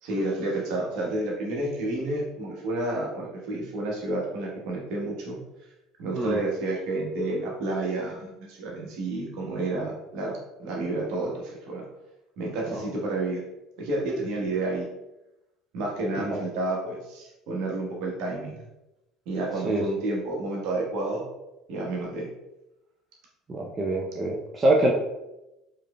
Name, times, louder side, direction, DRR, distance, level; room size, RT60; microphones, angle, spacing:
voice 1, 0.0-5.4 6.0-11.8 12.4-13.4 13.8-14.9 15.7-18.6 19.3-21.2 21.7-22.3, right 2 dB, 60° right, -2 dB, 1.1 m, -30 dB
voice 2, 23.5-24.9, right 1 dB, 25° right, -2 dB, 0.6 m, -24 dB
4.8 x 3.3 x 2.2 m, 0.94 s
figure-of-eight pair, 60°, 0 cm